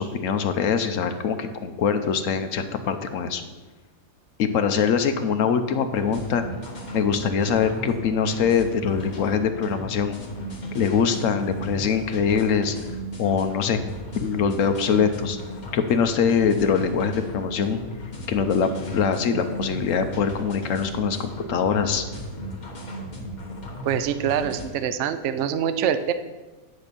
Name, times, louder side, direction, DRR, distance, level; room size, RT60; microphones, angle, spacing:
voice 1, 0.0-3.4 4.4-6.4 6.9-10.2 10.7-12.7 13.2-13.8 14.1-15.4 15.7-17.8 18.3-22.0, left 6 dB, 60° left, 8 dB, 1.0 m, -23 dB
sound 1, 5.9-24.7, equal, 30° left, 1.4 m, -36 dB
voice 2, 23.8-26.1, right 8 dB, 70° right, 11 dB, 0.7 m, -24 dB
9.7 x 4.1 x 6.8 m, 1.2 s
omnidirectional pair, 1.7 m